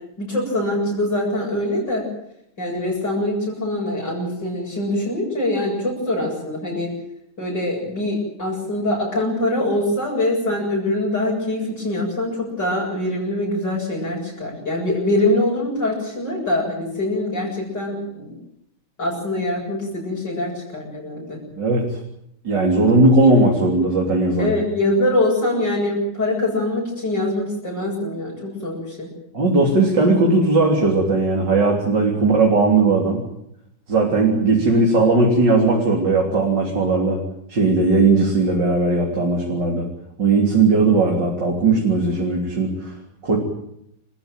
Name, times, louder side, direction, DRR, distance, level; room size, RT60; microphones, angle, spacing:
voice 1, 0.2-2.1 2.6-6.9 7.4-18.3 19.0-21.4 23.2-23.3 24.4-29.1, left 1 dB, 60° left, -4 dB, 8.3 m, -23 dB
voice 2, 22.4-24.5 29.3-33.2 33.9-37.2 37.5-39.8 40.2-42.9 43.2-43.4, right 3 dB, 60° right, -1 dB, 4.3 m, -17 dB
28.0 x 16.0 x 9.3 m, 0.77 s
omnidirectional pair, 2.2 m